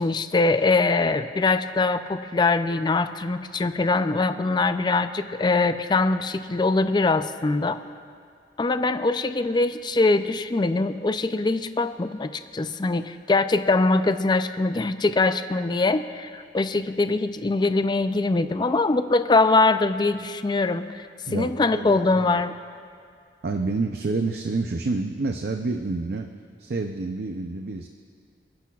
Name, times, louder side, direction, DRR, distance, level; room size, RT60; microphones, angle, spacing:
voice 1, 0.0-7.8 8.6-21.0 21.3-22.5, left 3 dB, 25° left, 10 dB, 0.4 m, -23 dB
voice 2, 21.3-22.4 23.4-26.3 26.6-27.9, right 3 dB, 60° right, 5 dB, 0.5 m, -28 dB
28.0 x 10.5 x 2.4 m, 2.2 s
head